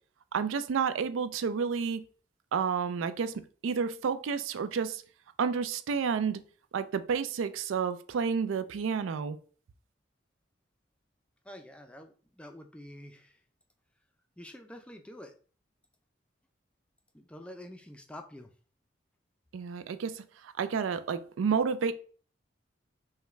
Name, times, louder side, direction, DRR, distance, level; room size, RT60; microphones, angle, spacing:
voice 1, 0.3-2.0 2.5-5.0 5.4-6.4 6.7-9.4 19.5-21.9, right 6 dB, 90° right, 0.4 m, -30 dB
voice 2, 11.5-13.3 14.4-15.3 17.1-18.5, left 1 dB, 5° left, 0.3 m, -47 dB
5.6 x 2.2 x 3.0 m
head